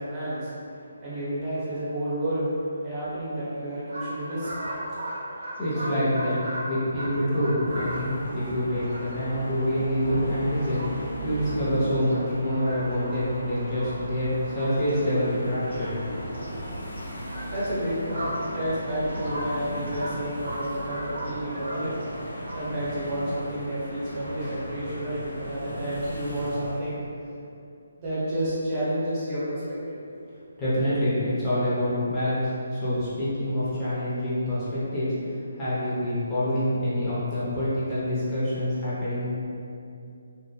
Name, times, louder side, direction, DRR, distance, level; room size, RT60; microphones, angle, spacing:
voice 1, 0.0-4.8 17.2-27.5 28.0-30.0, right 1 dB, 25° right, -11 dB, 0.7 m, -31 dB
sound 1, 3.9-15.0 15.3-22.6, right 1 dB, 75° right, 0.7 m, -38 dB
voice 2, 5.6-6.4 6.6-15.9 16.4-16.5 30.6-39.3, equal, 20° left, -12 dB, 0.6 m, -26 dB
sound 2, 7.6-26.8, equal, 75° left, 0.6 m, -37 dB
2.7 x 2.0 x 2.3 m, 2.5 s
hypercardioid pair, 160°, 0 cm